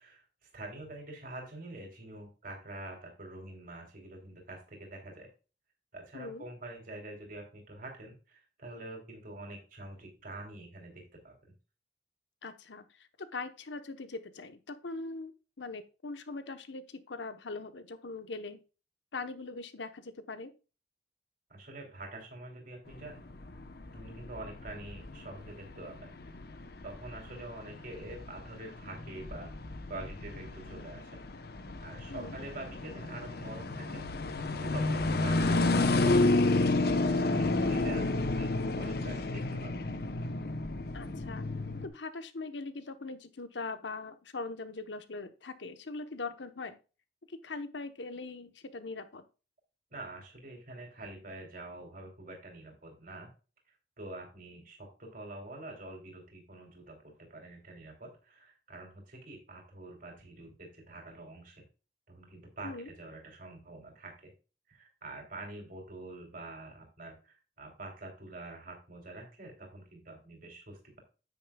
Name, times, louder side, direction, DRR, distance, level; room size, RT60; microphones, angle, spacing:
voice 1, 0.0-5.3 5.9-11.3 21.5-23.2 23.9-26.1 26.8-29.5 29.9-31.2 31.8-34.0 34.6-39.7 49.9-53.3 53.7-61.6 62.1-64.3 64.7-71.0, right 2 dB, 50° right, 1 dB, 3.0 m, -46 dB
voice 2, 12.4-15.3 15.6-18.6 19.1-20.5 32.1-32.4 40.9-41.5 41.8-46.8 47.3-49.2 62.6-62.9, left 3 dB, 85° left, 10 dB, 1.0 m, -41 dB
sound 1, 22.9-41.9, left 2 dB, 60° left, 0.9 m, -31 dB
9.2 x 8.8 x 2.3 m, 0.33 s
head